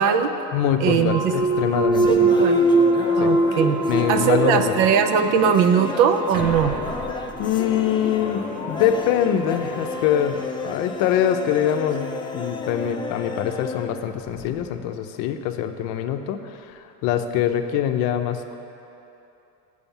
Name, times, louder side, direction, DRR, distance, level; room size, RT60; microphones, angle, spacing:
voice 1, 0.0-0.3 0.8-1.3 2.0-2.7 3.2-3.8 4.1-6.7, right 7 dB, 55° right, 8 dB, 0.6 m, -20 dB
voice 2, 0.5-2.1 3.2-3.3 3.8-4.7 7.4-18.6, left 9 dB, 60° left, 7 dB, 0.7 m, -24 dB
sound 1, 1.1-11.2, right 1 dB, 25° right, 0.9 m, -37 dB
Thump thud, 1.2-5.2 5.7-10.3, right 2 dB, 85° right, 1.7 m, -23 dB
sound 2, 1.4-14.8, left 4 dB, 15° left, 0.4 m, -33 dB
6.9 x 6.3 x 7.2 m, 2.9 s
supercardioid pair, 125°, 37 cm